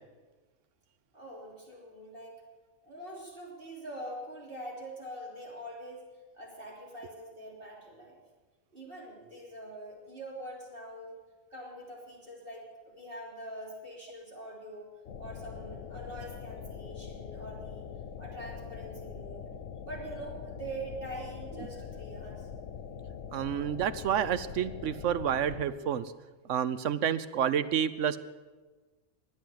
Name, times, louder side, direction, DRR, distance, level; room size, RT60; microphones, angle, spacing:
voice 1, 1.1-2.4 2.8-6.0 6.3-8.2 8.7-11.2 11.5-14.9 15.2-17.9 18.2-19.5 19.8-22.5, right 1 dB, 45° right, -3 dB, 3.6 m, -44 dB
sound 1, 15.1-25.7, left 7 dB, 70° left, 1.3 m, -43 dB
voice 2, 23.3-26.1 26.5-28.2, right 9 dB, 75° right, 14 dB, 1.1 m, -29 dB
22.0 x 8.0 x 7.9 m, 1.3 s
omnidirectional pair, 1.3 m